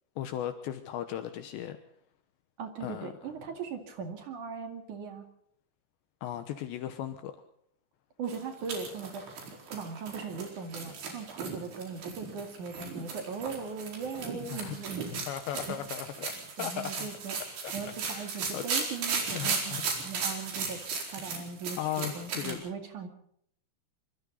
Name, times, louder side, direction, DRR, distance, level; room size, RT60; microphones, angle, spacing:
voice 1, 0.2-1.8 2.8-3.1 6.2-7.3 14.5-14.8 15.1-16.3 16.6-17.1 17.6-17.7 18.1-18.6 19.4-19.8 21.8-22.6, left 11 dB, 75° left, 9 dB, 3.2 m, -36 dB
voice 2, 2.6-5.3 8.2-9.2 9.7-15.2 15.7-15.8 16.6-17.4 17.7-20.8 21.1-23.1, right 5 dB, 50° right, 5 dB, 3.3 m, -39 dB
sound 1, 8.3-22.5, right 5 dB, 70° right, 6.6 m, -36 dB
25.5 x 25.5 x 4.1 m, 0.68 s
omnidirectional pair, 5.3 m